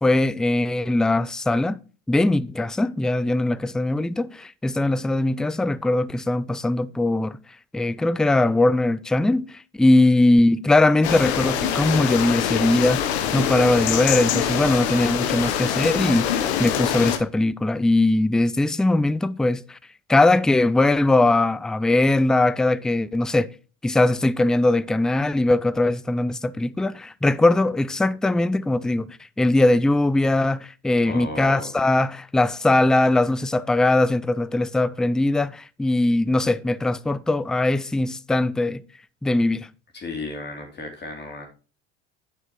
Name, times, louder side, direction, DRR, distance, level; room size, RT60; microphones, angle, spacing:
voice 1, 0.0-1.8 2.1-7.4 7.7-19.8 20.1-23.5 23.8-38.8 39.2-39.7, left 2 dB, ahead, 0.3 m, -20 dB
sound 1, 11.0-17.2, left 9 dB, 80° left, 1.1 m, -24 dB
voice 2, 31.1-31.7 39.9-41.4, left 2 dB, 30° left, 3.1 m, -34 dB
9.4 x 6.2 x 4.5 m
hypercardioid pair, 80°, 33 cm